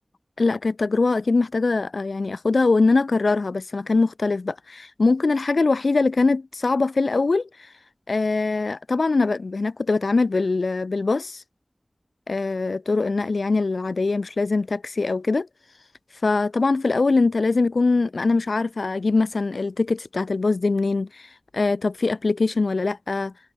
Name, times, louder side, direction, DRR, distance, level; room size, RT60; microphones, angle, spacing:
voice 1, 0.4-7.5 8.1-11.4 12.3-15.5 16.2-23.3, left 3 dB, 75° left, 2.1 m, -22 dB
wide cardioid pair, 70°, 0 cm